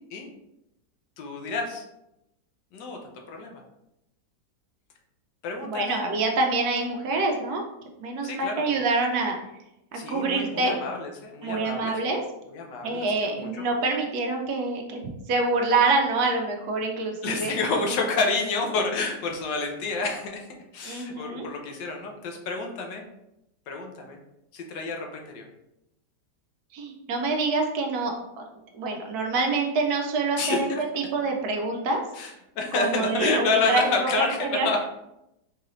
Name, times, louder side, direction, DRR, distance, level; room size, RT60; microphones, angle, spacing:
voice 1, 1.2-1.8 2.7-3.0 3.3-3.6 5.4-6.0 8.2-8.8 9.9-11.9 12.5-13.6 17.2-20.4 20.7-23.0 23.7-24.2 24.5-25.4 30.3-30.8 32.1-34.9, left 3 dB, 80° left, 2 dB, 1.3 m, -29 dB
voice 2, 5.6-7.6 8.0-9.4 9.9-10.7 11.4-12.2 12.8-17.5 20.8-21.5 26.7-28.4 28.7-30.7 31.0-32.0 32.7-34.7, right 3 dB, 70° right, 2 dB, 1.0 m, -26 dB
4.6 x 2.5 x 3.0 m, 0.87 s
omnidirectional pair, 1.9 m